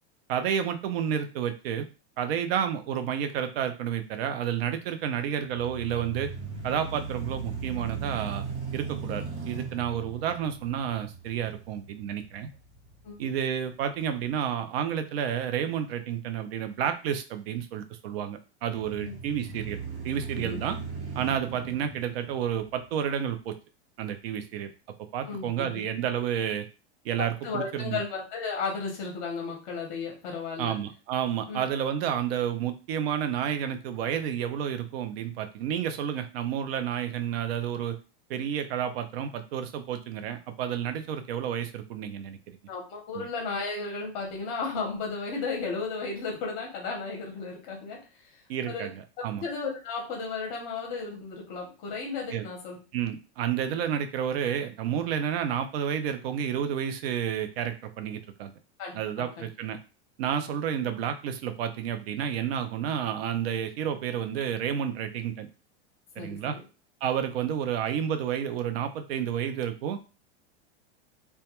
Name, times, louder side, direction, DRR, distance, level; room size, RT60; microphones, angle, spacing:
voice 1, 0.3-1.9 2.2-6.3 6.6-8.4 8.7-12.5 13.2-19.8 20.0-20.8 21.1-23.6 24.0-24.7 25.1-26.7 27.0-28.0 30.6-38.0 38.3-42.6 43.2-43.3 48.5-49.4 52.3-52.4 52.9-58.5 58.9-59.8 60.2-65.5 66.2-66.6 67.0-70.0, right 9 dB, 60° right, 8 dB, 0.5 m, -30 dB
sound 1, 5.4-13.5 14.0-14.1 18.6-23.1, right 5 dB, 75° right, 0.9 m, -38 dB
voice 2, 25.3-25.8 27.4-30.7 31.5-31.6 42.7-48.3 48.7-48.9 49.3-52.8 58.8-59.5 66.2-66.6, left 4 dB, 25° left, 0 dB, 0.6 m, -34 dB
2.2 x 2.2 x 2.9 m, 0.32 s
supercardioid pair, 180°, 34 cm